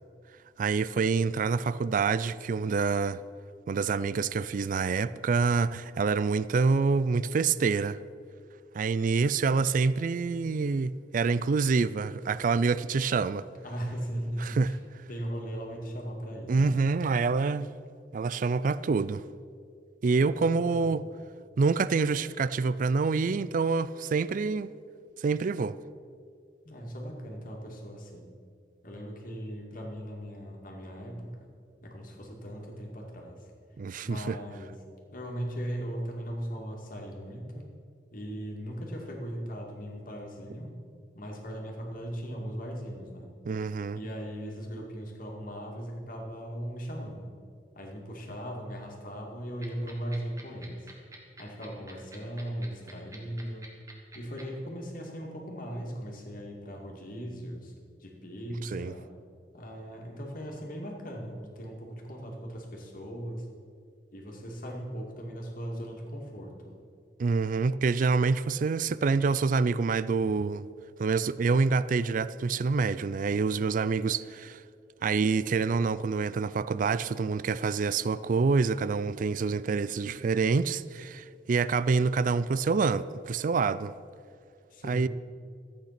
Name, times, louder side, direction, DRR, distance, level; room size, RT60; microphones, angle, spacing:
voice 1, 0.6-3.2 3.7-8.0 8.7-13.5 14.4-14.7 16.5-17.7 18.1-19.2 20.0-21.0 21.6-24.7 25.2-25.8 33.8-34.4 43.5-44.0 58.6-58.9 67.2-70.7 71.0-74.6 75.0-83.9 84.9-85.1, right 4 dB, 50° right, 0.4 m, -27 dB
voice 2, 13.6-14.8 15.1-16.7 20.2-20.9 26.6-28.3 28.8-31.5 31.8-33.5 34.0-34.8 35.1-37.6 38.1-40.7 41.1-43.3 43.9-47.3 47.7-50.9 51.4-53.7 54.1-57.7 58.0-59.1 59.5-63.5 64.1-66.7 84.7-85.1, equal, 50° left, 2.2 m, -38 dB
sound 1, 49.6-54.4, right 2 dB, 20° right, 1.8 m, -47 dB
13.5 x 8.6 x 5.9 m
head